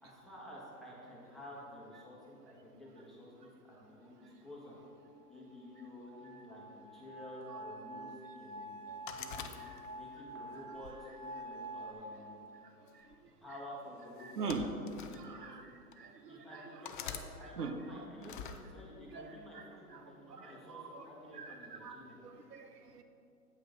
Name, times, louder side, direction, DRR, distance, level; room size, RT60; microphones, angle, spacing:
voice 1, 0.0-4.8 5.3-8.8 9.2-9.5 9.9-12.5 13.4-15.8 16.3-22.2, left 1 dB, ahead, -7 dB, 1.8 m, -51 dB
sound 1, 4.8-11.9, right 1 dB, 65° right, 1.7 m, -48 dB
sound 2, 9.1-10.1 10.7-11.9 12.9-13.1 14.2-15.2 15.9-16.0 16.8-17.3 18.2-18.6, left 8 dB, 35° left, 0.5 m, -45 dB
voice 2, 14.2-14.7 15.2-15.7 16.0-16.1 17.6-17.7 19.1-19.3 20.3-21.0 21.4-23.0, right 4 dB, 85° right, 7 dB, 0.8 m, -42 dB
8.7 x 5.5 x 5.4 m, 2.6 s
figure-of-eight pair, 115°, 46 cm